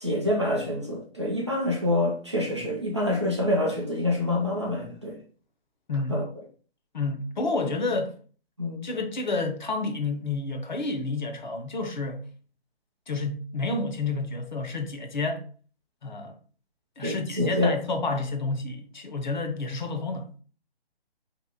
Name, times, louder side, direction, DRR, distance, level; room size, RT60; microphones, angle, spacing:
voice 1, 0.0-5.2 6.1-6.2 8.6-8.9 17.0-17.7, left 1 dB, 30° right, 0.5 m, -26 dB
voice 2, 5.9-6.2 6.9-8.1 8.8-12.2 13.1-15.4 16.0-16.3 17.0-20.4, left 3 dB, 50° left, 0.6 m, -30 dB
2.8 x 2.6 x 3.7 m
hypercardioid pair, 180°, 31 cm